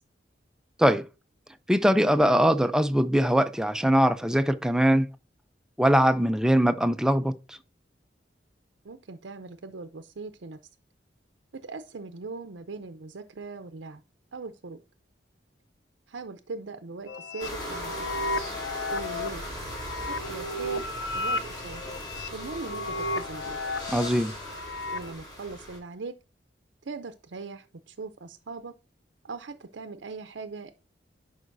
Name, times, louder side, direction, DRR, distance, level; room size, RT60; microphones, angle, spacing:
voice 1, 1.7-5.1 5.8-7.6 23.9-24.3, equal, 5° right, 0.4 m, -22 dB
voice 2, 8.8-10.6 11.6-14.0 14.3-14.8 16.1-18.0 18.9-19.4 20.0-20.8 21.1-21.8 22.3-23.6 24.9-26.1 26.8-28.7 29.2-30.7, right 3 dB, 80° right, 0.6 m, -40 dB
sound 1, 17.1-25.1, left 2 dB, 80° left, 0.6 m, -34 dB
sound 2, 17.4-25.8, equal, 25° left, 3.2 m, -39 dB
11.0 x 5.0 x 2.6 m
head